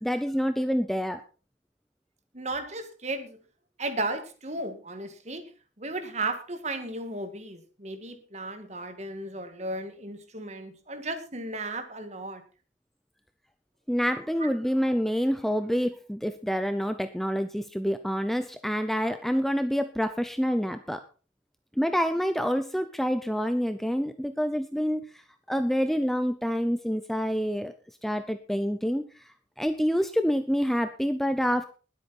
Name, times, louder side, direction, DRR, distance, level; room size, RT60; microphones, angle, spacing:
voice 1, 0.0-1.2 13.9-21.0 21.8-25.2 25.5-27.7 28.0-29.0 29.6-31.6, equal, ahead, 9 dB, 0.6 m, -27 dB
voice 2, 2.3-3.4 3.8-5.4 5.8-12.4 14.4-14.5, right 2 dB, 40° right, 8 dB, 2.0 m, -35 dB
20.0 x 8.2 x 4.2 m, 0.36 s
head